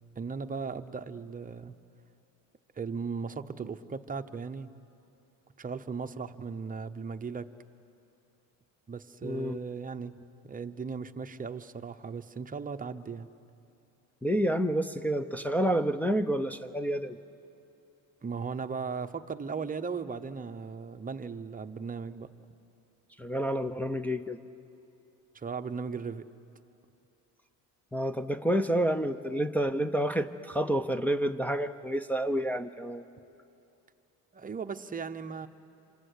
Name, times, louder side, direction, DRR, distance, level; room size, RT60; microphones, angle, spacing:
voice 1, 0.2-1.7 2.8-4.7 5.6-7.5 8.9-10.2 10.4-13.3 18.2-22.3 25.3-26.3 34.3-35.5, right 5 dB, 20° right, 8 dB, 0.9 m, -37 dB
voice 2, 9.2-9.6 14.2-17.2 23.2-24.4 27.9-33.0, right 1 dB, 5° left, 4 dB, 0.7 m, -29 dB
27.0 x 26.5 x 8.4 m, 2.7 s
cardioid pair, 115°, 38 cm